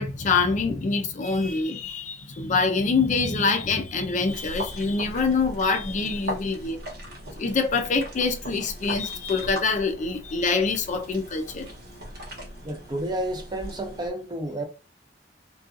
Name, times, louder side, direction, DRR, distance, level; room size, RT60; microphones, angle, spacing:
voice 1, 0.0-6.8 7.4-11.7, left 4 dB, 40° left, 0.4 m, -25 dB
sound 1, 4.3-14.1, equal, 60° right, 1.0 m, -39 dB
voice 2, 12.6-14.6, right 1 dB, 25° right, 0.5 m, -31 dB
2.6 x 2.3 x 2.5 m
head